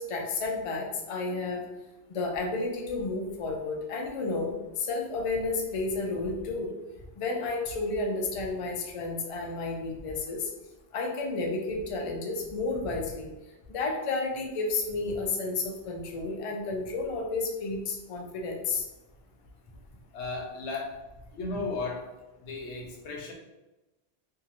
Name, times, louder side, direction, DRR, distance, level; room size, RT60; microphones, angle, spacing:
voice 1, 0.0-1.6 2.1-6.7 7.2-10.5 10.9-13.3 13.7-18.8, left 3 dB, 60° left, 1 dB, 0.3 m, -31 dB
voice 2, 20.1-21.0 21.3-22.1 22.4-23.3, left 3 dB, 80° left, 0 dB, 0.9 m, -35 dB
2.8 x 2.6 x 2.5 m, 1.1 s
omnidirectional pair, 1.1 m